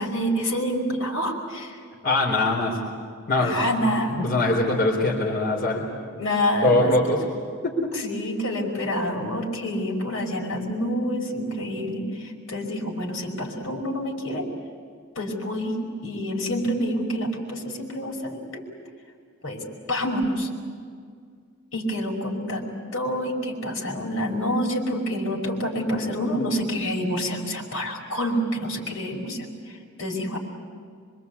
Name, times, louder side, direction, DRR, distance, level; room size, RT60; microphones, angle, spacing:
voice 1, 0.0-1.8 3.4-4.3 6.0-7.2 7.9-14.5 15.2-18.6 19.4-20.5 21.7-22.6 22.9-30.4, equal, 65° left, 0 dB, 5.4 m, -27 dB
voice 2, 2.0-2.8 3.3-3.6 4.2-5.8 6.6-7.2 7.6-7.9, left 2 dB, 45° left, -3 dB, 4.1 m, -22 dB
26.5 x 24.5 x 8.4 m, 2.1 s
head